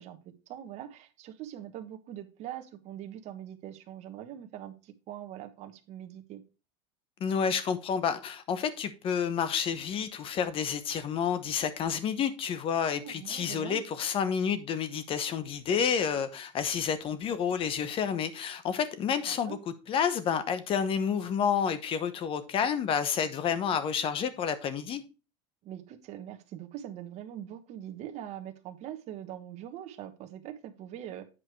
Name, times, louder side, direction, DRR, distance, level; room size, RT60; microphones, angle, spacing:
voice 1, 0.0-6.4 12.9-13.8 19.3-19.6 25.6-31.3, right 11 dB, 45° right, 1.1 m, -43 dB
voice 2, 7.2-25.0, left 7 dB, 35° left, 1.0 m, -30 dB
8.7 x 4.9 x 4.6 m
supercardioid pair, 140°, 16 cm